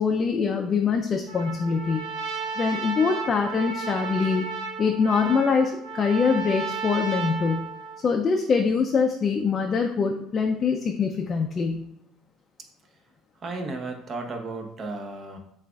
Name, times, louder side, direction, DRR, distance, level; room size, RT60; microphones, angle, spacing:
voice 1, 0.0-2.0 2.6-4.5 4.8-7.7 8.0-11.9, left 5 dB, 35° left, 2 dB, 0.4 m, -24 dB
Trumpet, 1.3-8.1, right 5 dB, 85° right, 0.9 m, -33 dB
voice 2, 12.6-13.0 13.3-15.4, right 3 dB, 40° right, 4 dB, 0.8 m, -35 dB
7.3 x 2.5 x 2.3 m, 0.77 s
supercardioid pair, 90°, 0 cm